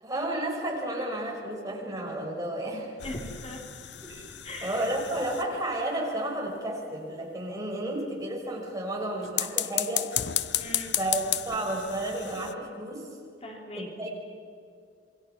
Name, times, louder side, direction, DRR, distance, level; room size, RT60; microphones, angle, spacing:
voice 1, 0.0-2.9 4.0-10.2 11.0-13.2 13.8-14.1, right 1 dB, 20° right, -2 dB, 5.8 m, -32 dB
sound 1, 3.0-5.8 9.2-12.5, left 12 dB, 75° left, 0.8 m, -33 dB
voice 2, 3.0-3.6 4.4-4.9 10.6-11.0 13.4-14.1, left 1 dB, 35° left, 0 dB, 3.4 m, -39 dB
28.0 x 23.0 x 6.0 m, 2.4 s
head